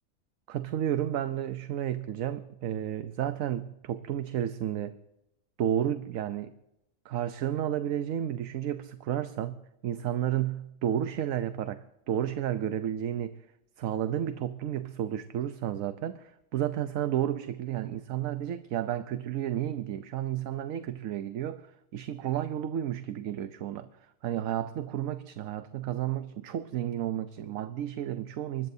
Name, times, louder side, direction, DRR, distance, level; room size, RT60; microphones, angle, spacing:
voice 1, 0.5-5.0 5.6-6.5 7.0-13.4 13.8-23.9 24.2-28.7, right 11 dB, 75° right, 11 dB, 1.1 m, -32 dB
24.5 x 20.0 x 2.7 m, 0.87 s
omnidirectional pair, 1.5 m